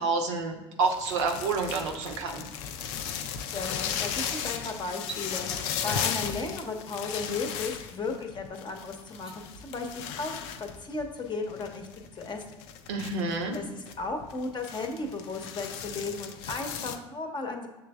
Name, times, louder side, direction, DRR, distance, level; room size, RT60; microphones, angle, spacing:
voice 1, 0.0-2.5 12.9-13.6, right 4 dB, 70° right, 4 dB, 0.8 m, -29 dB
sound 1, 0.8-17.0, left 8 dB, 60° left, 0.4 m, -36 dB
voice 2, 3.5-9.9 10.2-10.3 10.6-11.9 12.1-12.4 13.5-17.7, left 3 dB, 30° left, 3 dB, 0.7 m, -35 dB
sound 2, 5.0-5.3 7.0-7.2 9.1-9.4, right 5 dB, 5° right, 0.8 m, -42 dB
6.7 x 3.3 x 2.3 m, 1.1 s
figure-of-eight pair, 65°, 16 cm